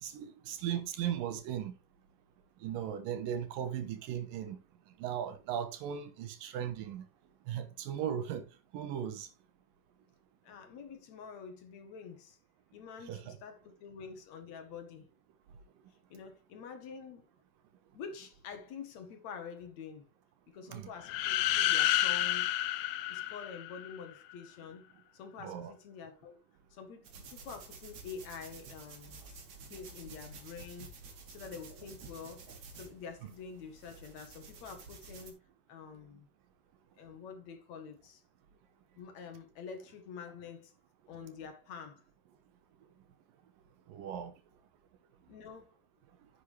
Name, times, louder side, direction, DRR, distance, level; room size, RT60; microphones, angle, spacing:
voice 1, 0.0-1.7 2.6-4.6 5.0-7.0 7.5-8.4 8.7-9.3 13.1-13.4 20.7-20.9 25.4-25.7 43.9-44.3, right 9 dB, 90° right, 2.9 m, -37 dB
voice 2, 10.4-12.4 12.7-15.1 16.1-17.2 17.9-20.1 20.5-22.5 23.1-26.4 26.7-29.4 29.7-31.0 31.3-35.4 35.7-36.3 37.0-38.2 39.0-40.7 41.1-42.0 45.3-45.7, left 6 dB, 60° left, 2.4 m, -47 dB
sound 1, 21.0-24.0, left 14 dB, 80° left, 1.6 m, -30 dB
sound 2, 27.0-35.3, right 4 dB, 60° right, 3.2 m, -51 dB
10.0 x 7.4 x 3.3 m
omnidirectional pair, 3.8 m